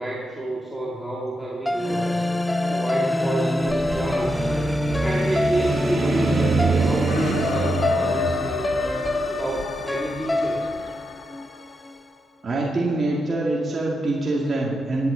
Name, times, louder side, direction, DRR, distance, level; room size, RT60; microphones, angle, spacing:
voice 1, 0.0-2.2 2.7-4.5 5.0-8.8 9.3-10.6, right 1 dB, 5° right, -5 dB, 2.1 m, -29 dB
sound 1, 1.6-11.9, left 1 dB, 10° left, 0.6 m, -25 dB
sound 2, 3.6-10.7, right 5 dB, 55° right, 1.2 m, -27 dB
sound 3, 7.1-11.9, left 7 dB, 90° left, 0.6 m, -31 dB
voice 2, 12.4-15.1, right 2 dB, 35° right, -4 dB, 2.2 m, -24 dB
18.0 x 10.5 x 4.0 m, 2.3 s
cardioid pair, 90°, 0 cm